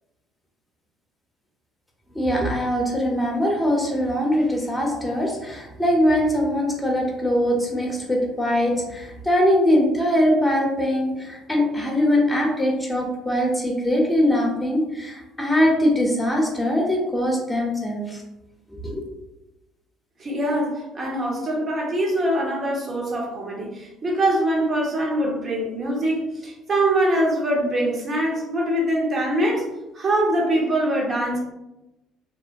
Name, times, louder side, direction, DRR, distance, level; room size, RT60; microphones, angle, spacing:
voice 1, 2.1-18.2 18.8-19.0, equal, 10° left, -1 dB, 0.9 m, -22 dB
voice 2, 20.2-29.7 29.9-31.4, right 1 dB, 40° right, -2 dB, 1.0 m, -23 dB
3.0 x 2.1 x 2.5 m, 0.95 s
hypercardioid pair, 60°, 0 cm